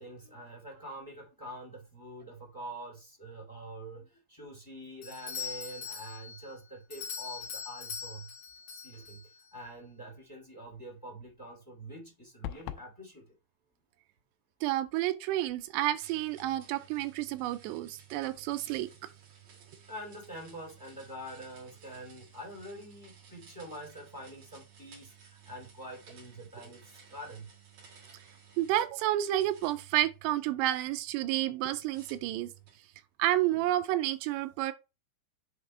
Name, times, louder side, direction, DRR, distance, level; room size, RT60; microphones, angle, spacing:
voice 1, 0.0-8.3 8.7-13.3 19.9-27.5 33.5-33.6, right 1 dB, 15° left, 0.8 m, -46 dB
Doorbell, 5.0-9.5, left 6 dB, 50° left, 2.4 m, -42 dB
sound 1, 12.4-12.9, left 13 dB, 90° left, 2.8 m, -39 dB
voice 2, 14.6-18.9 28.6-32.5 33.2-34.7, right 14 dB, 85° right, 2.7 m, -30 dB
sound 2, 16.0-28.9 29.3-30.8 31.9-32.9, right 7 dB, 55° right, 1.8 m, -56 dB
7.7 x 3.4 x 4.2 m
omnidirectional pair, 4.9 m